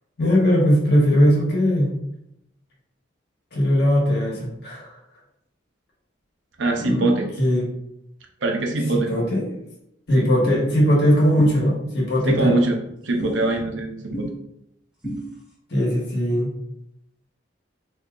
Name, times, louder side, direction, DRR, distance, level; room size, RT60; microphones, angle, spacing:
voice 1, 0.2-1.9 3.5-4.9 6.8-7.6 8.9-9.4 10.1-12.6 15.7-16.5, equal, 60° left, -3 dB, 1.3 m, -19 dB
voice 2, 6.6-7.3 8.4-9.1 10.2-10.3 12.2-12.8 13.0-14.3, right 2 dB, 90° right, 2 dB, 0.7 m, -23 dB
sound 1, 10.5-10.6 11.4-11.5 12.3-12.4 13.2-13.4 14.1-14.3 15.0-15.2, right 1 dB, 5° right, 1.2 m, -29 dB
4.6 x 2.7 x 2.4 m, 0.80 s
head